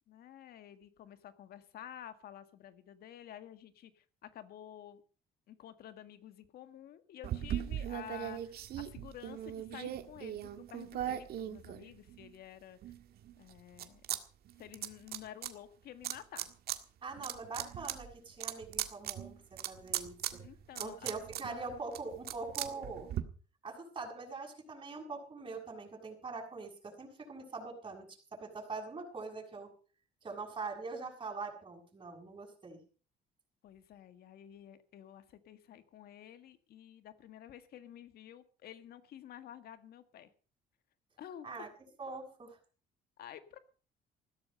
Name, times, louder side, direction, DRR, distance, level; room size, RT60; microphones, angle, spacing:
voice 1, 0.1-5.0 5.5-10.4 10.7-12.8 13.4-14.0 14.6-16.5 20.4-21.2 33.6-40.3 41.2-41.7 43.2-43.6, left 10 dB, 65° left, 10 dB, 1.8 m, -51 dB
sound 1, 7.2-12.3 12.8-14.2 14.5-15.5 16.0-16.8 17.1-23.2, right 11 dB, 65° right, 1.8 m, -39 dB
voice 2, 17.0-20.4 20.8-23.1 23.6-29.7 30.2-32.8 41.4-41.7 42.0-42.6, right 3 dB, 30° right, 1 dB, 7.3 m, -43 dB
16.0 x 13.0 x 5.4 m, 0.39 s
cardioid pair, 110°, 17 cm